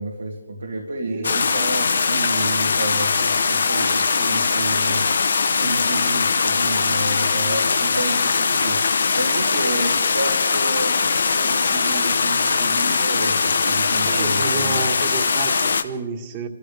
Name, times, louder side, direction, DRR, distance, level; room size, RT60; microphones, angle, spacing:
voice 1, 0.0-5.0 5.6-14.8, right 2 dB, 90° right, 0 dB, 2.0 m, -30 dB
voice 2, 1.1-1.4 14.1-16.5, right 4 dB, 30° right, 6 dB, 1.7 m, -30 dB
sound 1, 1.2-15.8, left 5 dB, 70° left, 0.9 m, -21 dB
28.5 x 14.5 x 3.5 m, 1.3 s
hypercardioid pair, 145°, 0 cm